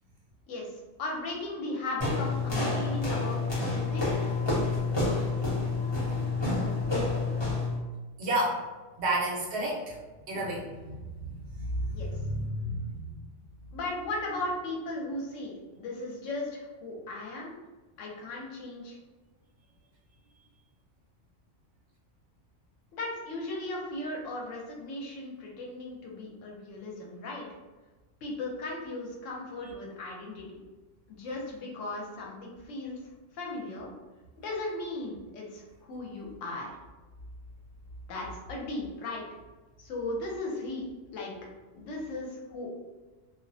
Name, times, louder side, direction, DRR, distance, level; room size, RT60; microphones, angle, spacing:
voice 1, 0.5-4.1 11.9-12.1 13.7-17.5 18.0-19.0 22.9-27.5 28.2-30.6 31.1-33.0 33.3-33.9 34.4-36.7 38.1-39.3 39.8-40.8 41.1-41.3 41.7-42.7, left 2 dB, 80° left, -2 dB, 1.0 m, -37 dB
sound 1, 2.0-7.8, left 3 dB, 25° left, 0.7 m, -28 dB
voice 2, 8.2-8.6 9.0-10.0 10.3-13.2, right 1 dB, 65° right, -4 dB, 0.8 m, -31 dB
2.3 x 2.1 x 2.6 m, 1.2 s
omnidirectional pair, 1.3 m